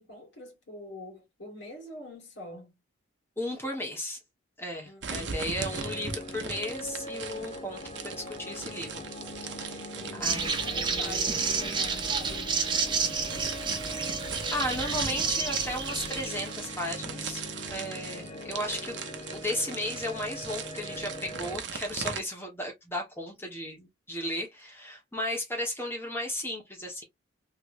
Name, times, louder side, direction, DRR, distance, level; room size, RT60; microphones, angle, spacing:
voice 1, 0.0-2.8 4.8-5.5 9.7-12.9, left 2 dB, 65° left, 2.0 m, -45 dB
voice 2, 3.4-4.2 4.6-9.1 9.7-9.8 10.1-11.4 14.5-19.0 19.3-27.0, left 1 dB, 10° left, 1.2 m, -35 dB
sound 1, 5.0-22.2, right 6 dB, 60° right, 0.7 m, -40 dB
sound 2, 5.6-21.6, left 1 dB, 30° left, 0.5 m, -41 dB
sound 3, 10.2-16.8, right 5 dB, 25° right, 0.6 m, -30 dB
3.2 x 3.1 x 2.5 m
head